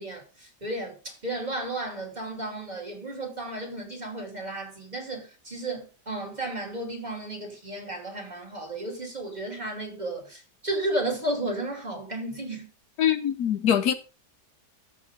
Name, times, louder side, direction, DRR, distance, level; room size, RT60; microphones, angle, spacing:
voice 1, 0.0-12.7, right 1 dB, 25° right, 2.8 m, -33 dB
voice 2, 13.0-13.9, left 9 dB, 70° left, 1.2 m, -23 dB
14.5 x 5.3 x 3.7 m
omnidirectional pair, 1.8 m